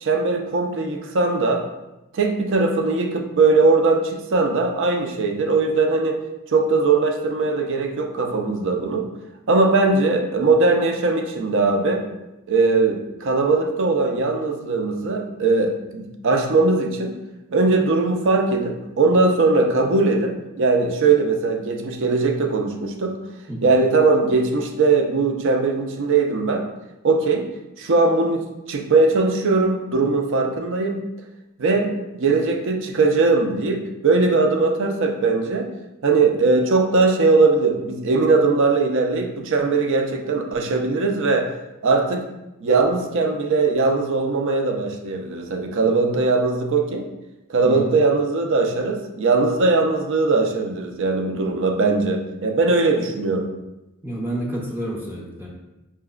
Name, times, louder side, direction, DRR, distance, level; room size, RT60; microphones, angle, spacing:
voice 1, 0.0-1.6 2.1-6.2 6.5-9.1 9.5-12.0 12.5-17.1 17.5-23.2 23.6-26.7 27.0-27.5 27.8-31.0 31.6-35.7 36.0-41.5 41.8-42.2 42.6-47.1 47.5-53.5, right 3 dB, 60° right, 4 dB, 0.5 m, -20 dB
voice 2, 23.5-23.8 47.6-47.9 54.0-55.5, right 1 dB, 10° right, -3 dB, 0.6 m, -29 dB
5.6 x 2.9 x 2.3 m, 0.98 s
head